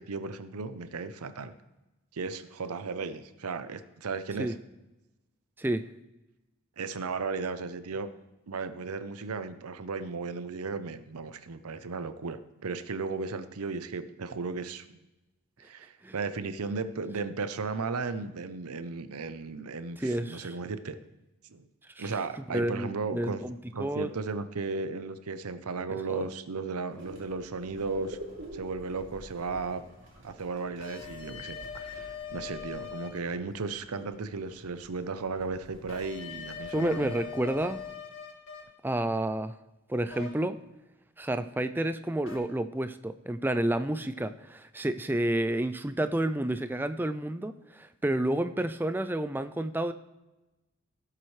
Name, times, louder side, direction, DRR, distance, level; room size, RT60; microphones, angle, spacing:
voice 1, 0.0-1.5 2.1-4.5 6.8-8.1 8.5-14.8 15.6-21.0 21.5-21.7 22.0-23.4 23.7-28.2 28.5-29.8 30.2-37.2, right 4 dB, 90° right, 11 dB, 0.7 m, -35 dB
voice 2, 20.0-20.6 22.0-22.1 22.5-24.1 25.9-26.3 36.7-37.8 38.8-39.6 39.9-40.6 41.2-49.9, right 1 dB, 10° right, 11 dB, 0.3 m, -30 dB
sound 1, 26.9-37.9, right 1 dB, 55° right, 2.8 m, -50 dB
sound 2, 30.8-33.2 35.9-38.6 40.1-40.3 42.2-42.4, left 7 dB, 60° left, 2.1 m, -41 dB
16.5 x 7.5 x 3.2 m, 1.0 s
head